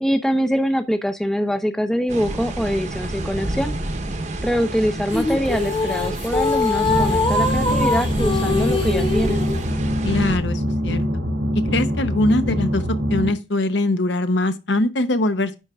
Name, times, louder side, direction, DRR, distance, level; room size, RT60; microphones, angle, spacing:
voice 1, 0.0-3.7 4.4-9.4, equal, ahead, 0.5 m, -23 dB
sound 1, 2.1-10.4, right 1 dB, 40° right, 0.9 m, -29 dB
sound 2, 5.1-9.7, left 3 dB, 25° left, 1.0 m, -23 dB
sound 3, 6.9-13.3, equal, 80° right, 1.9 m, -23 dB
voice 2, 10.0-11.0 11.7-12.8 13.1-15.5, left 2 dB, 70° left, 0.9 m, -22 dB
10.5 x 4.4 x 3.5 m
head